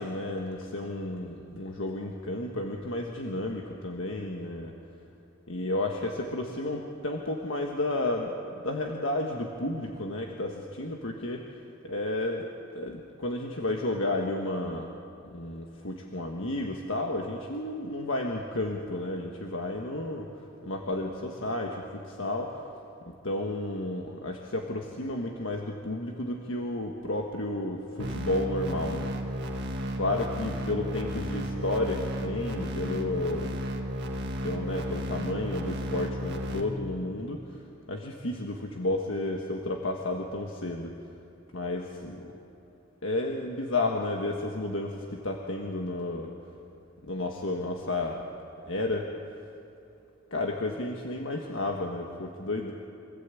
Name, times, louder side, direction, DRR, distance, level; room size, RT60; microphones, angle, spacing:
voice 1, 0.0-4.7 5.5-8.4 8.6-11.5 11.8-12.4 12.7-14.9 15.2-22.7 23.2-29.1 29.9-33.5 34.4-37.5 37.9-41.0 41.5-42.3 43.0-46.3 47.0-48.3 48.7-49.1 50.3-52.7, left 2 dB, 70° left, 1 dB, 1.5 m, -32 dB
sound 1, 28.0-36.6, equal, 60° right, 1.8 m, -33 dB
25.0 x 15.0 x 8.4 m, 2.7 s
head